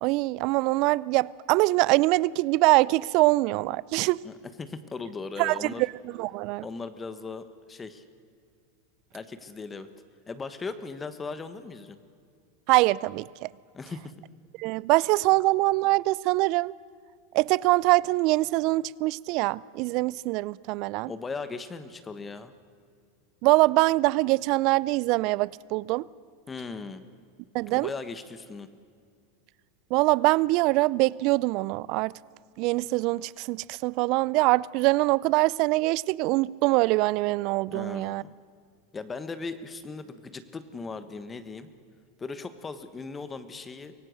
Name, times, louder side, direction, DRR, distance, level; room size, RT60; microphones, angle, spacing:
voice 1, 0.0-4.2 5.4-6.7 12.7-13.5 14.6-16.7 17.3-21.1 23.4-26.1 27.5-27.9 29.9-32.1 32.6-38.2, right 21 dB, 55° right, 0.4 m, -24 dB
voice 2, 4.2-5.8 6.6-8.0 9.1-9.9 10.3-12.0 13.7-14.1 21.0-22.5 26.5-27.0 27.7-28.7 37.7-38.3 38.9-41.7 42.2-43.9, left 4 dB, 20° left, 1.3 m, -38 dB
24.0 x 17.5 x 6.5 m
hypercardioid pair, 105°, 0 cm